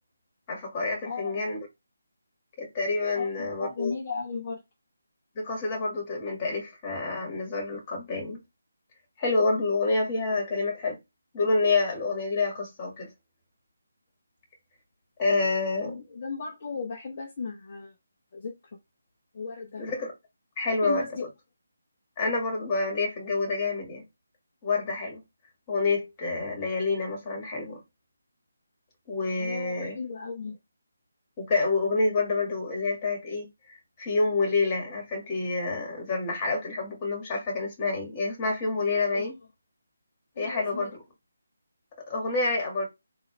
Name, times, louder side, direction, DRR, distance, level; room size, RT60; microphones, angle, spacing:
voice 1, 0.5-1.7 2.6-3.9 5.4-8.4 9.2-11.0 11.3-13.1 15.2-16.0 19.8-20.1 20.6-21.1 22.2-24.0 24.6-25.2 25.7-27.8 29.1-30.0 31.4-39.4 40.4-40.9 42.1-42.9, left 3 dB, 20° left, 1.9 m, -28 dB
voice 2, 1.0-1.4 3.1-4.6 15.8-17.9 18.3-18.5 19.3-19.9 20.6-21.3 29.4-30.6 39.1-39.3 40.3-40.9, left 4 dB, 40° left, 0.9 m, -36 dB
3.8 x 2.8 x 3.3 m
figure-of-eight pair, 155°, 0 cm